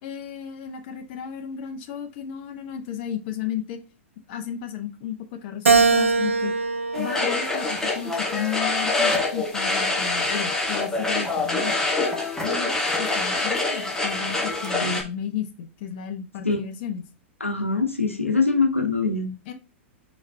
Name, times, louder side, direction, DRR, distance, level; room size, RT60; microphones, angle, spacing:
voice 1, 0.0-3.8 4.3-6.5 6.9-11.8 12.4-17.1 19.5-19.6, left 9 dB, 45° left, 6 dB, 0.8 m, -33 dB
Keyboard (musical), 5.7-8.1 8.7-10.0, right 4 dB, 80° right, 0.5 m, -23 dB
sound 1, 6.9-15.0, left 3 dB, 5° left, 1.3 m, -25 dB
voice 2, 17.4-19.4, left 4 dB, 90° left, 4 dB, 1.0 m, -23 dB
4.7 x 4.4 x 2.2 m, 0.31 s
figure-of-eight pair, 100°, 7 cm